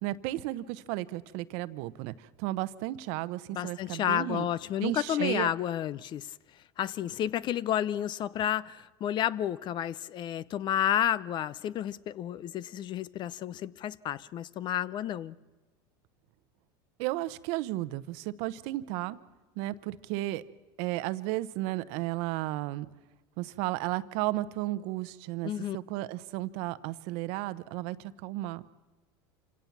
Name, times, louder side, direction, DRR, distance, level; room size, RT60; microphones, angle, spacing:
voice 1, 0.0-4.5 4.8-5.5 17.0-19.2 19.6-20.4 20.8-22.9 23.4-28.6, right 17 dB, 65° right, 0.9 m, -33 dB
voice 2, 3.5-6.3 6.8-15.4 25.4-25.8, left 11 dB, 40° left, 0.6 m, -31 dB
27.5 x 17.0 x 7.2 m
supercardioid pair, 125°, 12 cm